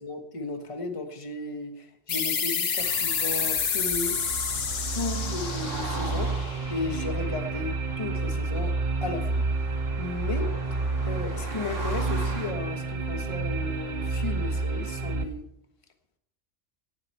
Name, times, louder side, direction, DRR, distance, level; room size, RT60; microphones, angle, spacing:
voice 1, 0.0-4.2 4.9-6.3 6.7-8.7 9.0-10.5 11.0-15.4, left 3 dB, 25° left, 6 dB, 1.4 m, -35 dB
sound 1, 2.1-7.4, left 6 dB, 60° left, 1.2 m, -29 dB
sound 2, 2.8-12.5, right 3 dB, 85° right, 2.8 m, -40 dB
sound 3, 3.9-15.3, right 3 dB, 40° right, 1.2 m, -30 dB
18.0 x 7.9 x 5.7 m, 0.75 s
omnidirectional pair, 1.2 m